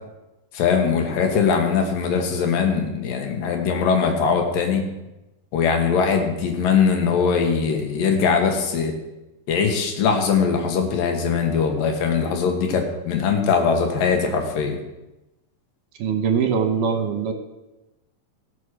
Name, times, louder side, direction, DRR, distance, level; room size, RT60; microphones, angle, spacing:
voice 1, 0.5-4.8 5.5-9.0 9.5-14.8, left 6 dB, 70° left, 4 dB, 3.0 m, -21 dB
voice 2, 16.0-17.3, right 6 dB, 70° right, 7 dB, 2.3 m, -22 dB
16.5 x 6.2 x 6.3 m, 0.99 s
omnidirectional pair, 4.3 m